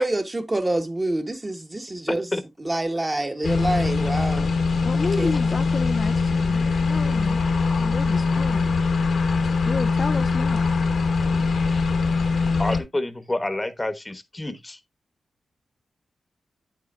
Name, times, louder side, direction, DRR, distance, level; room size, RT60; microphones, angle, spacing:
voice 1, 0.0-2.3 2.6-4.6 5.2-5.3, right 2 dB, 25° right, 1.3 m, -26 dB
sound 1, 3.4-12.8, left 4 dB, 75° left, 1.5 m, -22 dB
voice 2, 4.8-7.4 7.8-8.8 9.6-10.7, left 4 dB, 55° left, 0.5 m, -31 dB
voice 3, 12.6-14.8, left 2 dB, 20° left, 1.1 m, -28 dB
8.5 x 7.2 x 2.4 m
cardioid pair, 65°, 0 cm